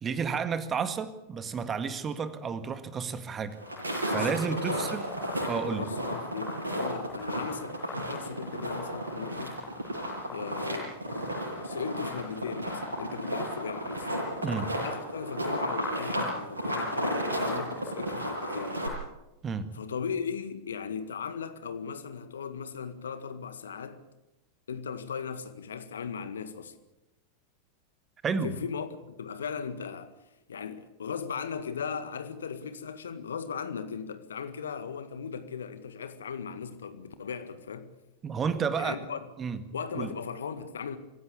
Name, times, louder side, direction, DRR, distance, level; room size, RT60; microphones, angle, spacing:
voice 1, 0.0-3.6 4.1-5.1 5.5-5.8 14.4-14.7 19.4-19.7 28.2-28.5 38.2-39.0 39.4-39.6 39.9-40.1, right 6 dB, 20° right, 1.9 m, -31 dB
sound 1, 3.5-18.9, equal, 75° right, 7.6 m, -33 dB
voice 2, 4.1-5.0 5.7-9.6 10.3-11.0 11.6-14.1 14.8-18.8 19.7-24.0 24.7-26.7 28.4-30.1 30.5-37.9 38.8-39.3 39.7-41.0, left 6 dB, 65° left, 1.8 m, -37 dB
25.0 x 16.0 x 8.5 m
figure-of-eight pair, 90°, 0 cm